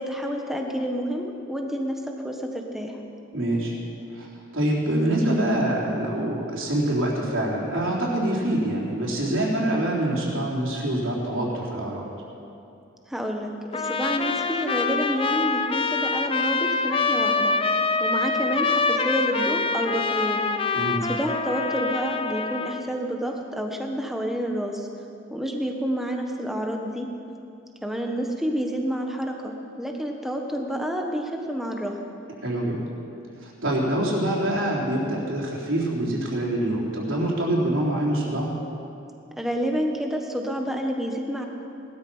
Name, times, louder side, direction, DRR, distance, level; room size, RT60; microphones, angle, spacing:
voice 1, 0.0-3.0 13.1-17.5 18.0-20.5 21.1-24.9 25.3-27.1 27.8-32.0 39.4-41.5, equal, ahead, 2 dB, 1.3 m, -29 dB
voice 2, 3.3-3.7 4.1-4.3 4.5-12.1 20.7-21.0 32.4-32.8 33.4-38.5, right 1 dB, 75° right, -4 dB, 3.8 m, -25 dB
Trumpet, 13.7-22.9, left 4 dB, 25° left, 0.5 m, -25 dB
19.5 x 13.0 x 5.6 m, 2.7 s
head